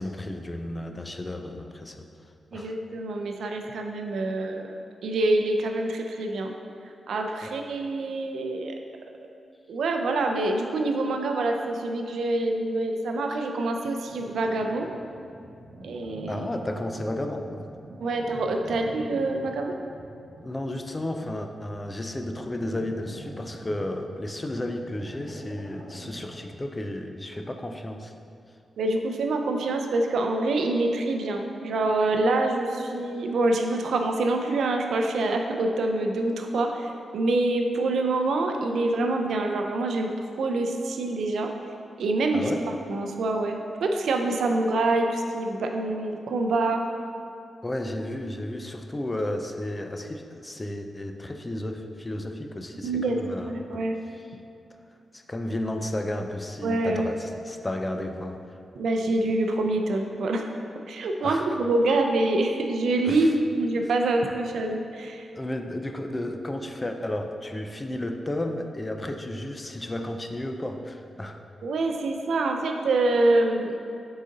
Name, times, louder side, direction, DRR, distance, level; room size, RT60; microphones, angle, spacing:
voice 1, 0.0-2.1 2.5-2.8 7.4-7.5 16.3-17.7 18.7-18.8 20.4-28.1 42.3-42.7 47.6-53.8 55.1-58.6 61.2-61.6 63.0-63.4 65.3-71.4, left 1 dB, 20° left, 5 dB, 0.4 m, -33 dB
voice 2, 2.5-6.5 7.1-8.7 9.7-14.9 15.8-16.5 18.0-19.8 28.8-40.1 40.4-41.5 42.0-42.5 42.9-46.8 52.8-53.2 53.5-54.0 56.6-57.1 58.8-60.4 60.9-63.3 63.6-65.3 71.6-73.8, right 2 dB, 85° right, 3 dB, 0.5 m, -26 dB
sound 1, 14.0-26.6, right 1 dB, 35° right, 1.1 m, -45 dB
6.4 x 4.0 x 3.9 m, 2.5 s
wide cardioid pair, 130°, 0 cm